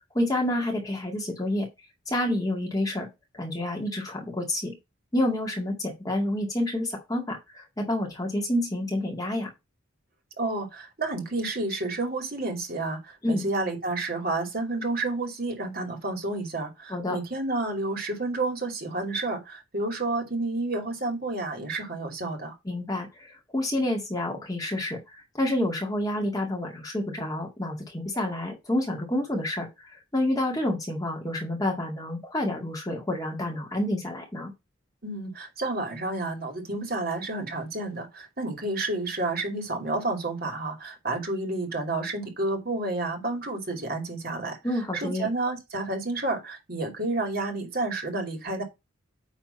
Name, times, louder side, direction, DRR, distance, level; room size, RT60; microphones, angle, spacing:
voice 1, 0.1-1.7 2.1-3.1 3.4-4.7 5.1-9.5 13.2-13.5 16.9-17.2 22.7-23.1 23.5-25.0 25.4-29.7 30.1-34.5 44.6-45.3, left 1 dB, 20° left, 2.0 m, -28 dB
voice 2, 10.4-22.5 35.0-44.6 44.9-48.6, right 2 dB, 50° right, 2.5 m, -30 dB
9.2 x 3.6 x 5.5 m
head